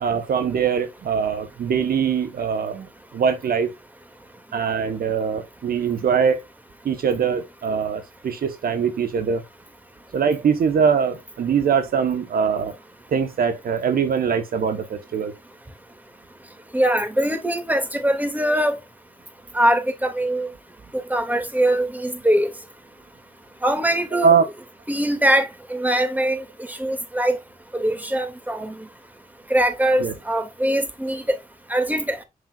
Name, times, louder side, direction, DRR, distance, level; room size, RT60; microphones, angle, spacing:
voice 1, 0.0-3.7 4.5-6.4 6.8-9.4 10.1-12.7 13.1-15.3 24.1-24.5 30.0-30.1, right 6 dB, 70° right, 1.1 m, -22 dB
voice 2, 16.7-18.8 19.5-20.5 20.9-22.5 23.6-24.3 24.9-27.4 27.7-28.7 29.5-31.2 31.7-32.2, right 1 dB, 10° right, 2.3 m, -22 dB
8.0 x 5.4 x 2.4 m
supercardioid pair, 45°, 16 cm